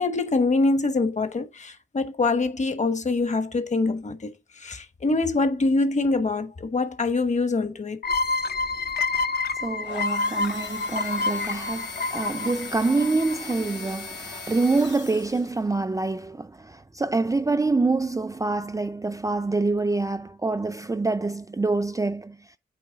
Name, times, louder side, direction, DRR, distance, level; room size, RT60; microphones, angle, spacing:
voice 1, 0.0-4.3 4.6-8.0, left 3 dB, 40° left, 1.1 m, -24 dB
sound 1, 8.0-13.5, left 3 dB, 60° left, 0.7 m, -28 dB
voice 2, 9.6-22.4, right 3 dB, 20° right, 0.4 m, -26 dB
sound 2, 9.8-15.6, left 5 dB, 90° left, 2.2 m, -39 dB
8.6 x 3.1 x 4.8 m
cardioid pair, 85°, 18 cm